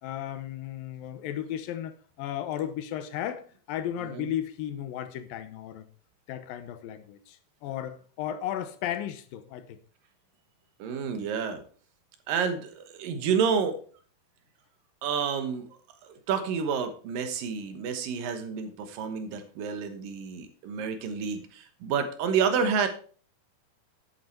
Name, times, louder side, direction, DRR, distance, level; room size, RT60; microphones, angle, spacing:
voice 1, 0.0-5.9 6.3-9.8, left 11 dB, 80° left, 2.6 m, -35 dB
voice 2, 10.8-11.6 12.3-13.8 15.0-15.6 16.0-22.9, right 6 dB, 75° right, 2.9 m, -29 dB
10.0 x 8.4 x 4.4 m
omnidirectional pair, 4.1 m